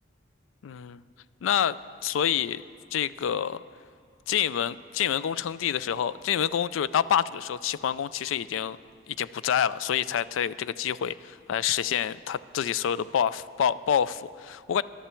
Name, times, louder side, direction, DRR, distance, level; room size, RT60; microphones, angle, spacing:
voice 1, 0.6-1.0 1.4-2.6 2.9-3.6 4.3-8.8 9.1-14.8, left 9 dB, 80° left, 17 dB, 0.3 m, -27 dB
14.0 x 11.5 x 4.4 m, 2.3 s
head